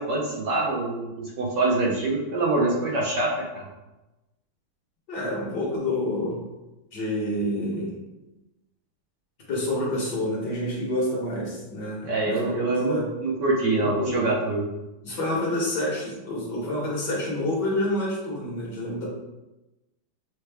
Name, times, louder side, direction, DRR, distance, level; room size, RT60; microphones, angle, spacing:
voice 1, 0.0-3.7 12.0-12.9 13.2-14.6, right 2 dB, 65° right, -3 dB, 1.3 m, -25 dB
voice 2, 5.1-6.4 6.9-8.0 9.5-13.1 13.8-14.3 15.0-19.0, left 1 dB, 55° left, -4 dB, 1.6 m, -28 dB
6.4 x 2.3 x 3.4 m, 1.0 s
omnidirectional pair, 2.3 m